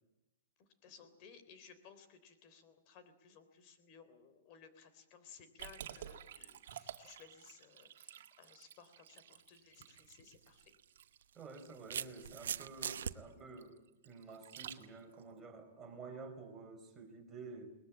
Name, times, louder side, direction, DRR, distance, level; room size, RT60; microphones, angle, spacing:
voice 1, 0.6-10.7, left 6 dB, 35° left, 10 dB, 3.4 m, -59 dB
Liquid, 5.6-15.2, right 10 dB, 65° right, 1.9 m, -52 dB
sound 1, 10.0-10.1 11.2-13.1, right 8 dB, 80° right, 1.0 m, -40 dB
voice 2, 11.3-13.8 14.0-17.7, right 4 dB, 10° right, 1 dB, 4.7 m, -50 dB
21.5 x 20.0 x 8.9 m, 0.99 s
hypercardioid pair, 155°, 0 cm